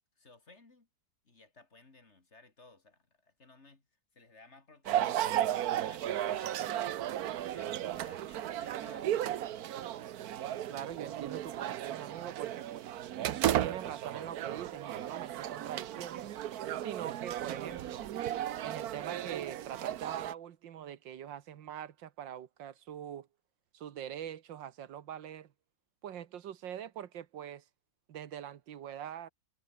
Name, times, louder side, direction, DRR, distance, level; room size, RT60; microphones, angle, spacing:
voice 1, 0.2-0.9 1.2-3.9 4.1-5.5 5.8-6.7 7.0-9.4, left 3 dB, 35° left, 2.9 m, -59 dB
sound 1, 4.9-20.3, right 11 dB, 65° right, 1.2 m, -35 dB
voice 2, 10.7-12.9 13.4-16.3 16.8-18.1 18.6-23.3 23.7-25.5 26.0-27.6 28.1-29.3, right 10 dB, 85° right, 1.9 m, -43 dB
omnidirectional pair, 2.0 m